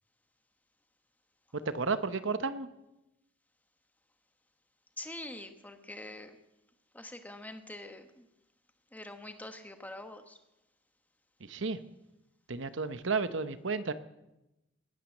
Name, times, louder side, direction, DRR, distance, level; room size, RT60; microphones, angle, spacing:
voice 1, 1.7-2.7 11.4-11.8 12.5-13.9, right 4 dB, 65° right, 12 dB, 0.9 m, -32 dB
voice 2, 5.0-6.4 6.9-8.3 8.9-10.4, left 1 dB, 10° left, 7 dB, 1.2 m, -45 dB
20.0 x 9.3 x 7.3 m, 0.94 s
head